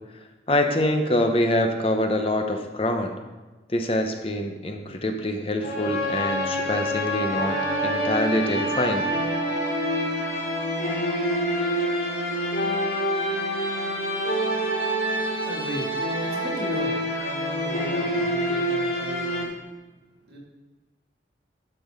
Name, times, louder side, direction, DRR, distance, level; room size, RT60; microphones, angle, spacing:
voice 1, 0.5-3.1 3.7-9.1, left 1 dB, 30° left, 5 dB, 0.9 m, -25 dB
sound 1, 5.6-19.4, equal, 65° left, 2.8 m, -26 dB
voice 2, 15.1-19.5 20.3-20.4, right 1 dB, 65° right, -2 dB, 2.7 m, -37 dB
12.0 x 6.2 x 5.2 m, 1.2 s
head